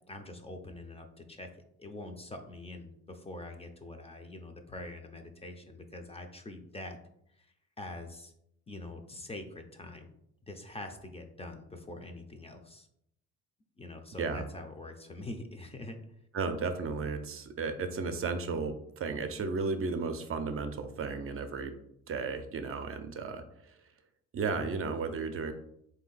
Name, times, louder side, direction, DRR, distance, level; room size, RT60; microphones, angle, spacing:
voice 1, 0.1-1.5 1.8-7.0 7.4-7.5 7.8-8.3 8.7-10.1 10.5-12.9 13.8-16.0, left 2 dB, 20° left, 5 dB, 0.5 m, -44 dB
voice 2, 16.3-21.7 22.1-23.8 24.3-25.5, right 4 dB, 45° right, 7 dB, 0.5 m, -34 dB
3.6 x 2.7 x 3.9 m, 0.74 s
cardioid pair, 90°, 30 cm